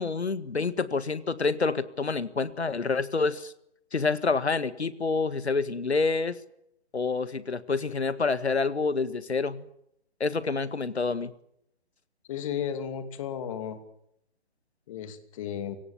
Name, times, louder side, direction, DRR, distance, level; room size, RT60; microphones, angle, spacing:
voice 1, 0.0-3.5 3.9-6.4 6.9-9.6 10.2-11.3, left 4 dB, 75° left, 15 dB, 1.8 m, -27 dB
voice 2, 12.3-13.8 14.9-15.8, left 8 dB, 30° left, 10 dB, 2.7 m, -34 dB
30.0 x 18.5 x 7.4 m, 0.77 s
figure-of-eight pair, 140°, 33 cm